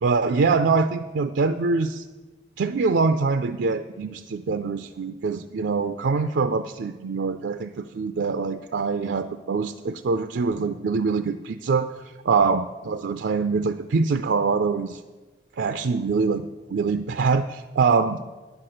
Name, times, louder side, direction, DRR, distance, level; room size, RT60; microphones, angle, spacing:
voice 1, 0.0-2.0 2.6-15.0 15.6-16.4 16.7-18.2, right 4 dB, 85° right, 9 dB, 0.4 m, -24 dB
9.7 x 5.9 x 7.8 m, 1.2 s
head